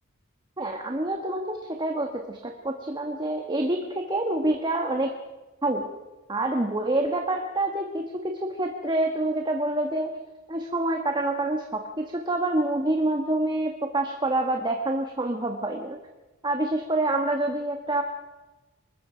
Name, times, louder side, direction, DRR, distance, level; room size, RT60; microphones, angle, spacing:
voice 1, 0.6-5.1 5.6-5.9 6.3-10.1 10.5-16.0 16.4-18.0, right 2 dB, 20° right, 3 dB, 1.5 m, -27 dB
25.5 x 21.0 x 5.1 m, 1.1 s
head